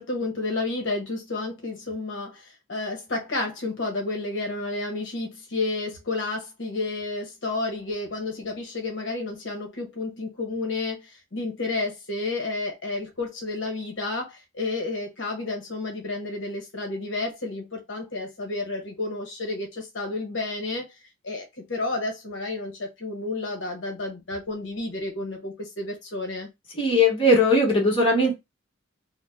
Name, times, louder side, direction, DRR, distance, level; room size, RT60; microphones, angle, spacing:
voice 1, 0.0-26.5, left 2 dB, 60° left, 0.9 m, -31 dB
voice 2, 26.8-28.4, left 1 dB, 25° left, 1.1 m, -19 dB
2.6 x 2.1 x 3.3 m
head